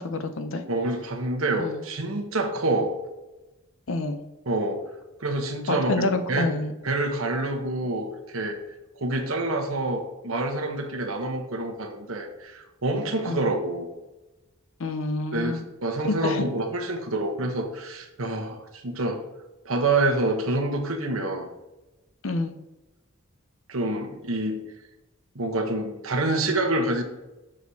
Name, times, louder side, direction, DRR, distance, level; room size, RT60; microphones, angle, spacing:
voice 1, 0.0-0.6 1.6-1.8 3.9-4.2 5.7-6.7 13.2-13.4 14.8-15.6 16.0-16.5 22.2-22.5, left 2 dB, 70° left, 9 dB, 0.6 m, -28 dB
voice 2, 0.7-2.9 4.5-4.8 5.2-6.5 6.8-8.6 9.0-13.9 15.3-19.2 19.6-21.5 23.7-24.6 25.3-27.0, right 2 dB, 80° right, 4 dB, 1.0 m, -27 dB
6.5 x 6.2 x 2.8 m, 1.0 s
head